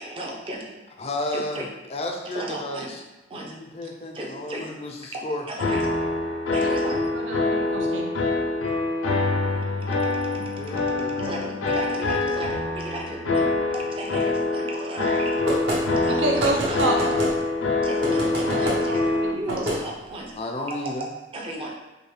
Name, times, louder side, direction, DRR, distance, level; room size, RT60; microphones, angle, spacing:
voice 1, 0.0-0.9 1.3-1.7 2.3-2.9 3.3-3.5 4.1-4.7 5.1-5.9 6.5-7.0 9.8-15.4 16.0-17.1 17.8-19.0 19.3-20.3 20.7-21.7, right 1 dB, 25° right, -2 dB, 0.5 m, -36 dB
voice 2, 1.0-1.6 1.9-3.0 3.3-5.4 10.6-11.6 20.4-21.1, left 1 dB, 30° left, 2 dB, 0.3 m, -32 dB
sound 1, 5.6-19.3, left 3 dB, 90° left, 0.6 m, -25 dB
voice 3, 7.1-8.1 8.9-10.4 16.0-17.1 18.5-19.6, right 2 dB, 80° right, -1 dB, 0.7 m, -30 dB
sound 2, 15.5-15.8 16.4-17.3 18.0-18.8 19.5-19.8, equal, 60° right, 1.0 m, -27 dB
5.3 x 2.1 x 3.2 m, 1.0 s
head